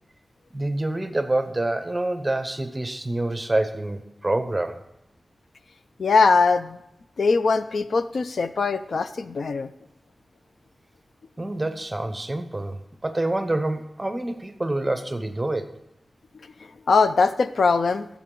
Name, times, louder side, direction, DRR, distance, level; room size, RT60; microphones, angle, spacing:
voice 1, 0.5-4.8 11.4-15.8, right 2 dB, 15° right, 9 dB, 0.7 m, -27 dB
voice 2, 6.0-6.8 7.2-9.7 16.9-18.1, left 4 dB, 75° left, 12 dB, 0.4 m, -21 dB
13.0 x 7.2 x 3.8 m, 0.83 s
wide cardioid pair, 120°, 0 cm